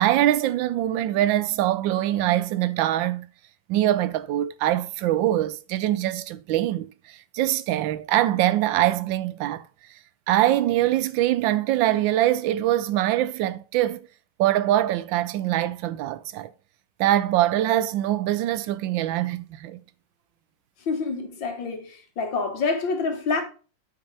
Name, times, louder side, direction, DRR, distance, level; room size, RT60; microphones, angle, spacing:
voice 1, 0.0-3.3 3.7-9.7 10.3-14.0 14.4-16.5 17.0-19.8, right 13 dB, 90° right, 1.3 m, -23 dB
voice 2, 20.9-23.4, left 4 dB, 80° left, 2.2 m, -27 dB
8.8 x 5.5 x 3.3 m
omnidirectional pair, 2.0 m